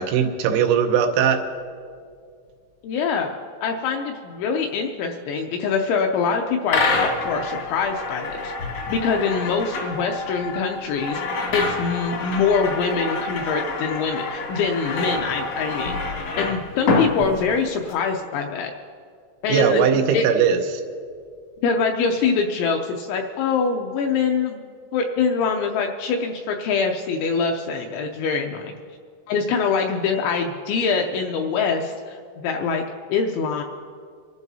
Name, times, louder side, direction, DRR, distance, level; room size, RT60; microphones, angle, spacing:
voice 1, 0.0-1.5 19.5-20.8, right 7 dB, 90° right, 5 dB, 3.5 m, -19 dB
voice 2, 2.8-3.3 3.6-8.5 8.9-16.0 16.4-18.7 19.4-19.8 20.1-20.3 21.6-24.6 24.9-28.8 29.3-32.8 33.1-33.6, left 5 dB, 85° left, 3 dB, 2.7 m, -24 dB
sound 1, 6.7-17.9, left 3 dB, 65° left, 1.6 m, -27 dB
27.5 x 12.0 x 2.7 m, 2.1 s
omnidirectional pair, 5.9 m